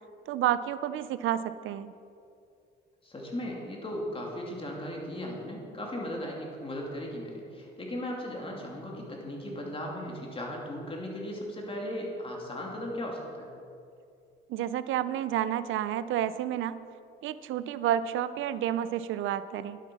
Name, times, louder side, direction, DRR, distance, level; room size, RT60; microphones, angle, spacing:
voice 1, 0.3-1.9 14.5-16.8 17.2-19.8, right 11 dB, 80° right, 15 dB, 0.5 m, -30 dB
voice 2, 3.0-13.5, left 1 dB, 25° left, -2 dB, 2.8 m, -37 dB
11.0 x 8.2 x 5.6 m, 2.5 s
cardioid pair, 90°, 20 cm